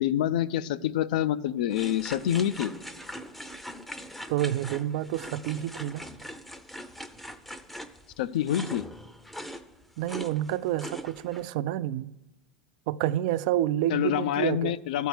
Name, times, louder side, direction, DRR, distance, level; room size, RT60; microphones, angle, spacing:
voice 1, 0.0-2.7 8.2-8.8 13.9-15.1, left 11 dB, 80° left, 0.4 m, -27 dB
sound 1, 1.7-11.5, equal, 5° left, 0.5 m, -42 dB
voice 2, 4.3-6.1 10.0-12.1 12.9-14.8, right 13 dB, 65° right, 0.3 m, -29 dB
12.5 x 4.6 x 8.2 m
supercardioid pair, 135°, 4 cm